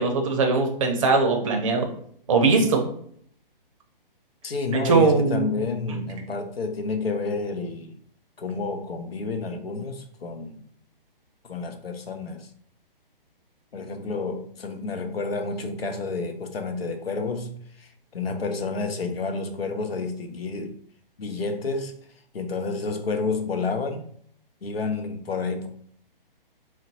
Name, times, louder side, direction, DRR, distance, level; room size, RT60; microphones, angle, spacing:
voice 1, 0.0-1.9 2.3-2.9 4.8-5.5, right 4 dB, 35° right, 0.5 m, -20 dB
voice 2, 4.4-8.0 8.4-10.6 11.4-12.5 13.7-20.8 21.2-21.9 22.3-24.0 24.6-25.7, left 4 dB, 90° left, 0.6 m, -30 dB
3.9 x 2.1 x 2.6 m
figure-of-eight pair, 140°, 29 cm